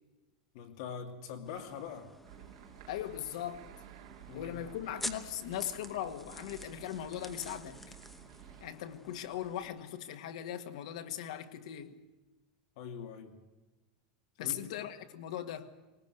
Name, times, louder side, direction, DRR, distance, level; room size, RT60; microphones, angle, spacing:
voice 1, 0.5-2.1 4.3-4.6 12.8-13.4 14.4-14.8, left 7 dB, 55° left, 2.7 m, -43 dB
sound 1, 1.5-9.7, left 1 dB, 5° left, 1.0 m, -49 dB
sound 2, 2.2-8.7, right 12 dB, 65° right, 2.0 m, -53 dB
voice 2, 2.9-3.7 4.3-7.9 8.6-12.0 14.4-15.7, left 11 dB, 70° left, 1.7 m, -39 dB
19.5 x 19.5 x 8.0 m
supercardioid pair, 175°, 4 cm